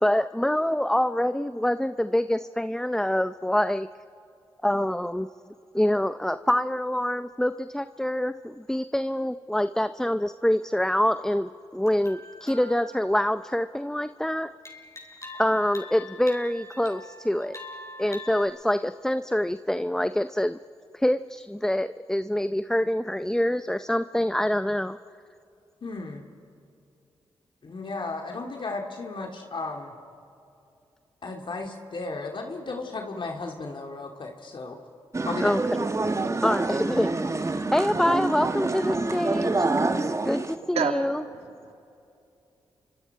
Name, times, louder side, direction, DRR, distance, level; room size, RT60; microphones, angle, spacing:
voice 1, 0.0-3.9 4.6-5.3 5.7-14.5 15.4-17.6 18.0-20.6 20.9-25.0 35.4-35.6 36.4-39.7 40.2-41.2, left 1 dB, 5° left, 11 dB, 0.6 m, -25 dB
sound 1, 11.9-14.1 14.6-18.4, left 1 dB, 30° left, 5.7 m, -44 dB
voice 2, 25.8-26.3 27.6-29.9 31.2-34.8 35.2-35.5, left 3 dB, 50° left, 2 dB, 2.3 m, -34 dB
sound 2, 35.1-40.5, right 3 dB, 30° right, 1.3 m, -27 dB
voice 3, 40.8-41.3 41.6-41.7, right 6 dB, 80° right, 5 dB, 1.9 m, -28 dB
29.0 x 24.5 x 4.7 m, 2.6 s
cardioid pair, 55°, 10 cm